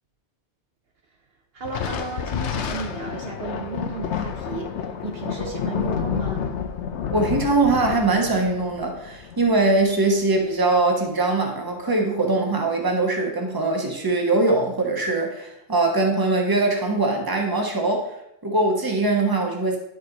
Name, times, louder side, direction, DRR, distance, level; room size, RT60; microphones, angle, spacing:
voice 1, 1.5-6.4, right 4 dB, 60° right, 2 dB, 1.0 m, -34 dB
Thunder, 1.6-10.4, left 7 dB, 80° left, 1.0 m, -30 dB
voice 2, 7.1-18.2 18.4-19.8, right 2 dB, 20° right, 1 dB, 1.2 m, -22 dB
10.5 x 4.7 x 4.0 m, 0.81 s
omnidirectional pair, 1.2 m